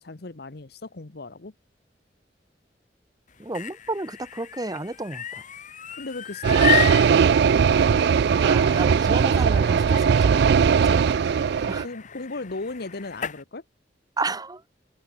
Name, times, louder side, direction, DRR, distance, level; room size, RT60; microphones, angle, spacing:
voice 1, 0.0-1.5 6.0-7.0 11.8-13.6, left 3 dB, 65° left, 1.1 m, -36 dB
sound 1, 3.3-13.4, left 9 dB, 45° left, 1.3 m, -33 dB
voice 2, 3.4-5.4 8.4-11.2 11.7-11.9 14.2-14.8, right 2 dB, 20° right, 1.6 m, -32 dB
sound 2, 6.4-11.9, right 6 dB, 70° right, 0.4 m, -19 dB
head